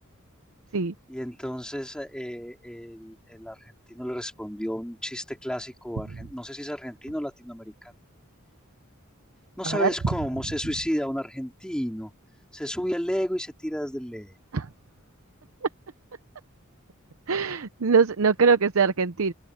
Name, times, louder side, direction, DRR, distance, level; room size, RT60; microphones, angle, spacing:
voice 1, 1.1-7.9 9.6-12.1 12.5-14.4, equal, 5° left, 4.4 m, -32 dB
voice 2, 17.3-19.3, right 5 dB, 80° right, 0.7 m, -22 dB
open air
head